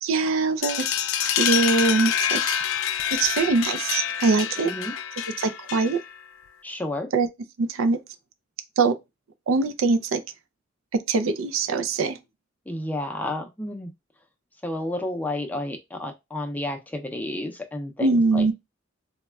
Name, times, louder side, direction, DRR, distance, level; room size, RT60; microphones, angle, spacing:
voice 1, 0.0-0.8 1.2-2.4 3.1-4.7 5.4-6.0 7.1-7.3 7.6-8.0 8.8-9.0 9.5-10.2 10.9-12.2 18.0-18.5, right 3 dB, 85° right, 0.4 m, -22 dB
sound 1, 0.6-6.2, left 9 dB, 85° left, 0.4 m, -27 dB
voice 2, 4.6-4.9 6.6-7.1 12.7-13.9 14.6-18.5, left 1 dB, 10° left, 0.4 m, -31 dB
4.0 x 2.2 x 2.2 m
head